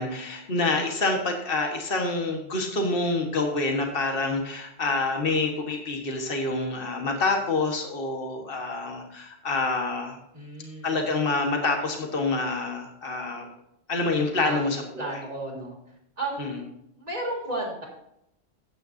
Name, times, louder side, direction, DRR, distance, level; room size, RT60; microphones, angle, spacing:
voice 1, 0.0-10.2 10.8-13.5 13.9-14.8 15.1-15.2 15.5-15.6 16.4-16.6, left 3 dB, 55° left, 3 dB, 1.7 m, -27 dB
voice 2, 10.3-11.0 14.4-15.8 16.2-16.7 17.0-17.9, right 2 dB, 35° right, -2 dB, 3.2 m, -34 dB
14.0 x 9.1 x 2.7 m, 0.78 s
omnidirectional pair, 1.1 m